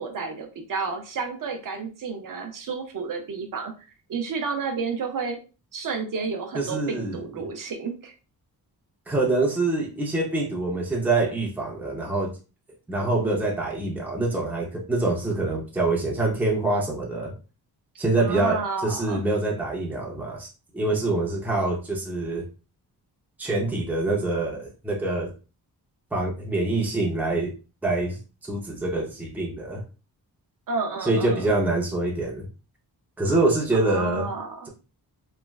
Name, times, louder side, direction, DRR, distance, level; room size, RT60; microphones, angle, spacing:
voice 1, 0.0-3.7 4.1-5.4 5.7-8.1 18.2-19.2 30.7-31.5 33.7-34.7, right 4 dB, 55° right, 0.6 m, -31 dB
voice 2, 6.5-7.2 9.1-12.3 12.9-17.3 18.0-20.5 20.7-22.4 23.4-25.3 26.1-27.5 27.8-29.8 31.0-32.5 33.2-34.3, right 2 dB, 5° right, 0.5 m, -25 dB
3.1 x 2.3 x 2.3 m
wide cardioid pair, 180°, 38 cm